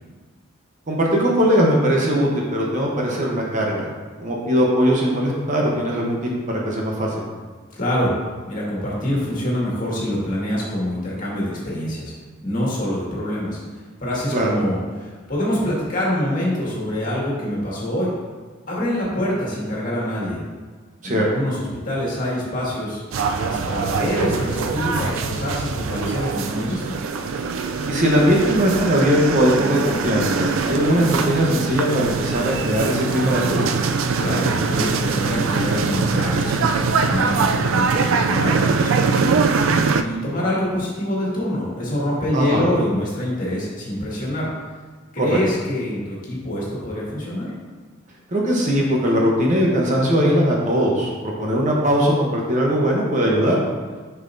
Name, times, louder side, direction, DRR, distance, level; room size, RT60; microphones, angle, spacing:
voice 1, 0.9-3.9 4.2-7.1 14.3-14.5 21.0-21.3 27.9-33.7 42.3-42.6 45.2-45.4 48.3-53.6, equal, 40° right, -2 dB, 0.9 m, -20 dB
voice 2, 7.8-8.1 8.5-12.1 12.4-13.6 14.0-18.1 18.7-20.4 21.0-23.0 23.4-27.0 34.2-39.4 39.9-44.5 45.1-47.5, left 1 dB, 40° left, -6 dB, 1.9 m, -25 dB
sound 1, 23.1-40.0, right 5 dB, 70° right, 0.4 m, -22 dB
7.1 x 5.6 x 2.6 m, 1.4 s
head